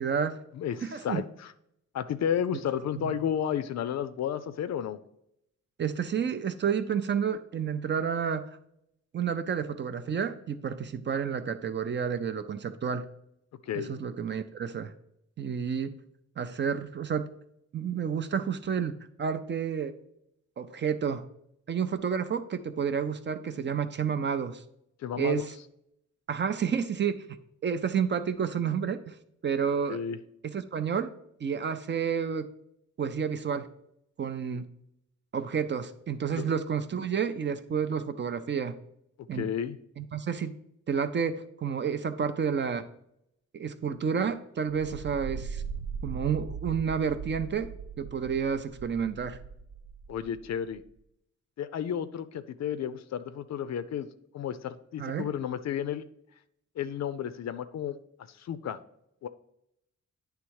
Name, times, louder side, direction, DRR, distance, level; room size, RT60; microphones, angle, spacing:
voice 1, 0.0-0.4 0.8-1.2 3.0-3.2 5.8-8.5 9.1-13.0 13.7-14.9 15.4-15.9 16.4-17.3 17.7-18.9 19.2-19.9 20.6-21.2 21.7-24.6 25.2-25.5 26.3-27.2 27.6-29.2 29.4-30.0 30.4-31.1 31.4-32.5 33.0-33.7 34.2-34.6 35.3-38.7 39.3-39.5 40.0-40.5 40.9-42.8 43.5-45.6 46.0-47.7 48.0-49.4 55.0-55.3, right 7 dB, 40° right, 10 dB, 0.4 m, -30 dB
voice 2, 0.5-1.5 1.9-5.0 13.6-13.9 25.0-25.5 29.9-30.2 34.5-34.6 36.3-36.5 39.3-39.8 50.1-50.8 51.6-54.1 54.3-56.0 56.8-58.0 58.3-58.8 59.2-59.3, left 9 dB, 60° left, 12 dB, 0.5 m, -32 dB
sound 1, 44.7-50.7, right 6 dB, 85° right, 0.5 m, -40 dB
9.8 x 3.5 x 4.7 m, 0.75 s
wide cardioid pair, 180°, 30 cm